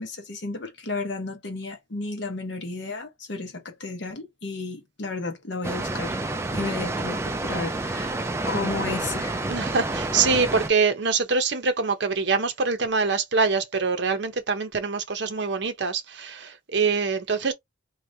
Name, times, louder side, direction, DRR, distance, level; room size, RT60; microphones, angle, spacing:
voice 1, 0.0-8.2 8.5-9.5, left 3 dB, 65° left, 1.0 m, -33 dB
Water, 5.6-10.7, right 2 dB, 15° right, 0.3 m, -29 dB
voice 2, 9.5-17.5, right 4 dB, 60° right, 0.8 m, -24 dB
3.2 x 2.9 x 2.7 m
head